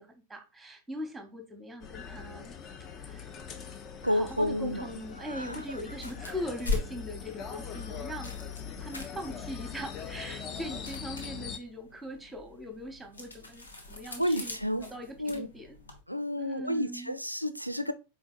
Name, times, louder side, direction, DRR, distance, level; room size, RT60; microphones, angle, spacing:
voice 1, 0.0-2.5 3.0-3.3 4.1-8.4 8.8-14.5 14.8-15.8 16.4-17.1, equal, 5° right, 1.0 m, -41 dB
sound 1, 1.8-11.6, left 7 dB, 30° left, 0.6 m, -42 dB
voice 2, 4.0-4.8 5.2-5.8 14.2-14.9 15.2-15.5 16.1-17.9, equal, 90° right, 0.4 m, -31 dB
Paper Movement and Crumble, 5.9-16.0, left 3 dB, 75° left, 0.9 m, -41 dB
4.5 x 3.7 x 2.4 m
figure-of-eight pair, 90°, 0 cm